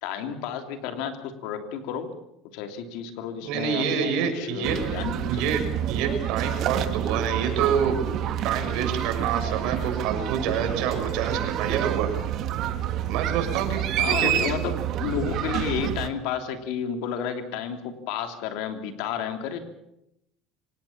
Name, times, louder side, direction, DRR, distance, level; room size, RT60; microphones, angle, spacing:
voice 1, 0.0-2.1 2.5-5.6 14.0-17.8 18.1-19.6, left 8 dB, 70° left, 6 dB, 3.1 m, -31 dB
voice 2, 3.4-4.8 5.3-5.6 5.9-7.9 8.4-12.1 13.1-13.8 14.1-14.3, right 7 dB, 65° right, 5 dB, 6.7 m, -27 dB
sound 1, 4.6-16.1, right 10 dB, 45° right, 1.7 m, -28 dB
26.5 x 18.0 x 7.3 m, 0.81 s
cardioid pair, 140°, 0 cm